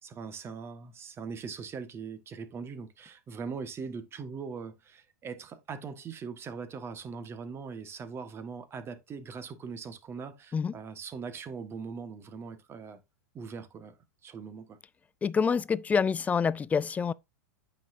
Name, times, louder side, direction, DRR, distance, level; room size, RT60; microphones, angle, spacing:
voice 1, 0.0-13.0 13.3-13.9 14.2-14.8, right 5 dB, 25° right, 1.4 m, -41 dB
voice 2, 15.2-17.1, left 6 dB, 15° left, 0.4 m, -27 dB
9.2 x 5.8 x 2.6 m
hypercardioid pair, 100°, 9 cm